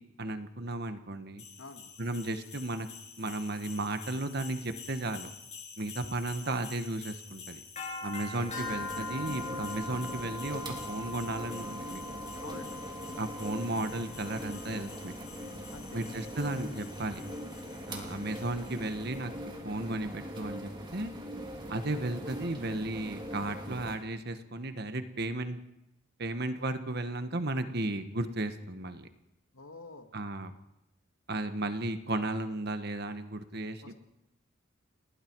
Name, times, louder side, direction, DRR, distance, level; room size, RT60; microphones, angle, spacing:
voice 1, 0.0-1.4 2.0-2.9 3.2-5.3 5.8-7.6 8.0-12.0 13.2-15.1 15.9-17.2 17.9-19.3 19.6-21.1 21.7-25.6 26.2-29.1 30.1-30.5 31.3-33.9, right 2 dB, 50° right, 9 dB, 1.4 m, -34 dB
sound 1, 1.4-19.1, left 3 dB, 35° left, 7.0 m, -44 dB
voice 2, 1.6-1.9 12.4-12.8 15.7-16.0 29.5-30.1 33.8-33.9, left 3 dB, 90° left, 6 dB, 2.2 m, -47 dB
sound 2, 8.3-24.0, equal, 20° right, 3.0 m, -42 dB
29.5 x 19.5 x 4.7 m, 0.88 s
head